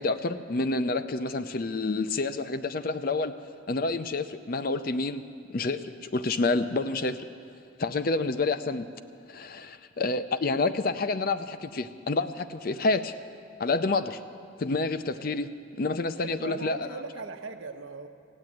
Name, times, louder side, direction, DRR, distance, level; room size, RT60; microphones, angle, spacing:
voice 1, 0.0-3.3 3.7-5.2 5.5-7.3 7.8-8.9 9.3-13.1 13.6-14.2 14.6-15.5 15.8-16.8, left 3 dB, 45° left, 11 dB, 0.5 m, -28 dB
voice 2, 9.4-9.7 16.2-18.1, right 4 dB, 90° right, 6 dB, 0.9 m, -39 dB
16.0 x 8.6 x 9.2 m, 2.3 s
head